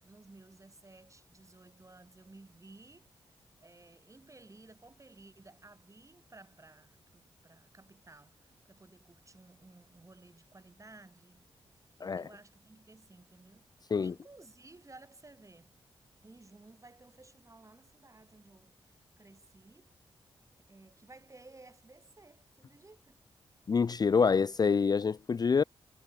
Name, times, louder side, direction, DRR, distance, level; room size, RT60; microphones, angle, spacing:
voice 1, 0.0-3.3 3.6-11.5 12.0-15.7 16.2-19.9 20.7-23.2, right 2 dB, 30° right, 5.4 m, -56 dB
voice 2, 23.7-25.6, left 5 dB, 40° left, 0.4 m, -26 dB
cardioid pair, 55°, 11 cm